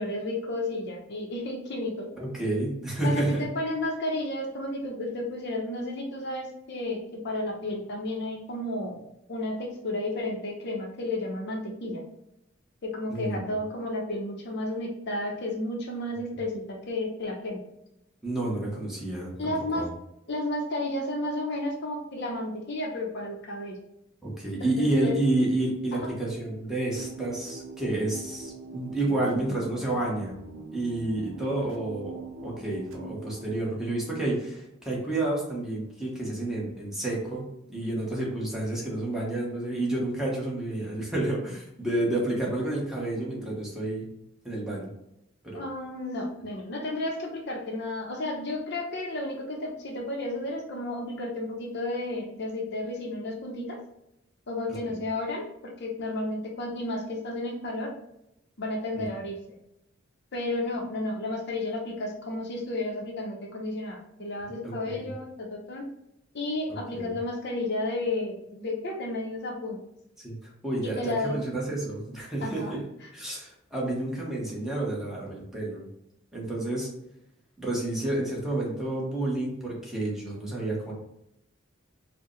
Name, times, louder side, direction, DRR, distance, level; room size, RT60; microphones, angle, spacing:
voice 1, 0.0-2.1 3.0-12.0 12.8-17.6 19.4-19.9 20.3-23.8 24.8-25.2 25.9-26.0 45.5-53.8 54.5-57.9 58.6-59.4 60.3-65.9 66.3-69.8 71.0-71.4 72.4-72.7, left 2 dB, 60° left, 0 dB, 0.7 m, -32 dB
voice 2, 2.2-3.4 13.1-13.5 18.2-19.9 24.2-30.3 30.7-44.1 44.4-44.9 45.4-45.6 58.9-59.0 64.6-65.1 66.9-67.1 70.2-72.8 73.1-75.9 76.3-76.9 77.6-80.9, right 2 dB, ahead, -4 dB, 0.9 m, -30 dB
sound 1, 26.9-33.6, right 2 dB, 70° right, 0.6 m, -43 dB
4.6 x 2.1 x 3.1 m, 0.82 s
head